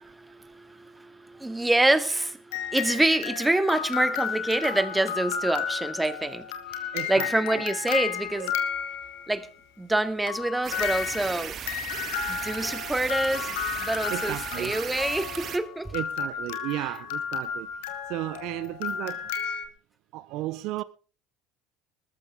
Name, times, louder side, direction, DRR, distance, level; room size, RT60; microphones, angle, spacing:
voice 1, 0.0-6.5 7.1-8.5 9.3-9.5 9.8-11.6 12.3-13.5 13.8-15.9, right 2 dB, 10° right, 2.2 m, -26 dB
sound 1, 2.5-9.4 10.3-19.7, left 8 dB, 80° left, 2.4 m, -33 dB
voice 2, 6.9-7.6 8.4-8.5 13.6-13.8 14.1-14.7 15.9-17.7 18.1-19.3 20.1-20.8, right 17 dB, 70° right, 0.6 m, -34 dB
sound 2, 10.6-15.6, right 8 dB, 50° right, 2.1 m, -37 dB
20.0 x 14.0 x 3.6 m
hypercardioid pair, 75°, 0 cm